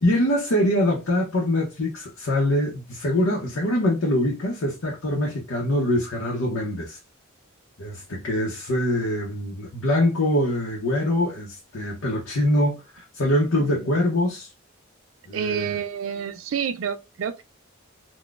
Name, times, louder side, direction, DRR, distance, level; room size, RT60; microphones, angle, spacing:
voice 1, 0.0-7.0 7.8-14.5 15.3-15.8, left 1 dB, 85° left, 0.8 m, -24 dB
voice 2, 15.3-17.4, right 7 dB, 75° right, 0.4 m, -29 dB
3.8 x 2.2 x 2.4 m
head